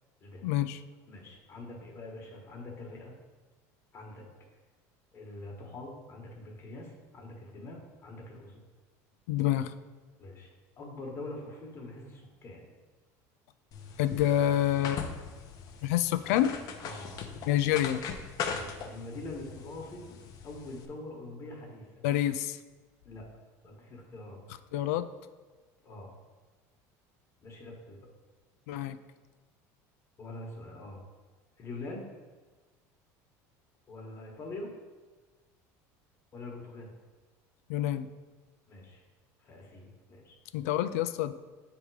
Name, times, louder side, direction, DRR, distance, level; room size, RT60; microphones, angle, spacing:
voice 1, 0.4-0.8 9.3-9.7 14.0-15.0 15.8-16.6 17.5-18.0 22.0-22.6 24.7-25.1 28.7-29.0 37.7-38.1 40.5-41.3, left 12 dB, 90° left, 12 dB, 0.4 m, -27 dB
voice 2, 1.1-3.1 3.9-4.3 5.1-8.6 10.2-10.5 10.8-12.8 16.8-17.2 18.5-20.0 20.4-21.9 23.0-23.3 23.6-24.4 25.8-26.1 27.4-28.1 30.2-31.0 31.6-32.1 33.9-34.7 36.3-36.9 38.7-39.0 39.4-40.4, left 2 dB, 35° left, 0 dB, 1.3 m, -44 dB
sound 1, 13.7-20.9, left 6 dB, 50° left, 0.7 m, -40 dB
7.2 x 3.6 x 4.8 m, 1.3 s
supercardioid pair, 125°, 8 cm